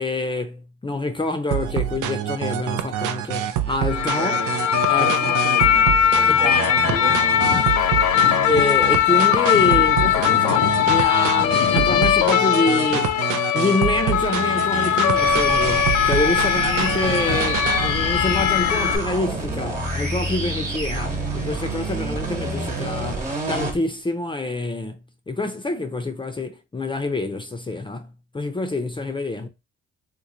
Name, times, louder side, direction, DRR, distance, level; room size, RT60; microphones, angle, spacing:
voice 1, 0.0-4.3 4.9-5.4 6.3-6.6 8.5-25.0 25.3-28.1 28.3-29.5, left 2 dB, 15° left, 0.5 m, -26 dB
sound 1, 1.5-17.9, right 11 dB, 80° right, 0.5 m, -27 dB
sound 2, 3.9-19.0, left 10 dB, 75° left, 0.4 m, -20 dB
voice 2, 4.2-4.5 4.9-5.9 6.1-8.5, right 7 dB, 45° right, 0.7 m, -33 dB
sound 3, 15.2-23.8, right 2 dB, 25° right, 1.2 m, -28 dB
3.0 x 2.2 x 3.7 m
cardioid pair, 90°, 30 cm